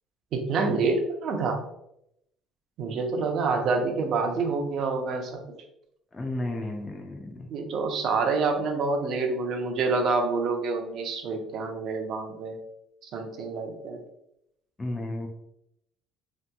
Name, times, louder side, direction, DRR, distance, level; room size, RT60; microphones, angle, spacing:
voice 1, 0.3-1.6 2.8-5.4 7.5-12.6 13.0-14.0, right 4 dB, 45° right, 4 dB, 0.5 m, -27 dB
voice 2, 6.1-7.5 14.8-15.3, left 1 dB, 15° left, 2 dB, 0.3 m, -33 dB
3.3 x 2.8 x 2.2 m, 0.79 s
cardioid pair, 165°, 0 cm